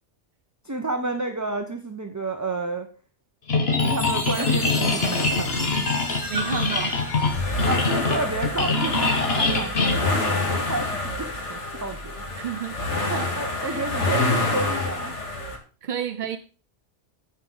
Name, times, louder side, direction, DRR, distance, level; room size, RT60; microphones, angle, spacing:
voice 1, 0.6-2.9 3.8-5.8 7.7-10.9 11.2-12.2 13.4-15.2, right 2 dB, 15° right, 0.8 m, -30 dB
sound 1, 3.5-10.9, left 3 dB, 60° left, 1.4 m, -24 dB
Chime, 3.7-8.4, equal, 40° left, 3.8 m, -34 dB
sound 2, 4.4-15.6, left 2 dB, 75° left, 2.3 m, -28 dB
voice 2, 6.2-7.1 12.3-12.7 13.1-13.9 15.8-16.4, right 9 dB, 50° right, 0.6 m, -31 dB
15.5 x 5.4 x 3.9 m
omnidirectional pair, 1.2 m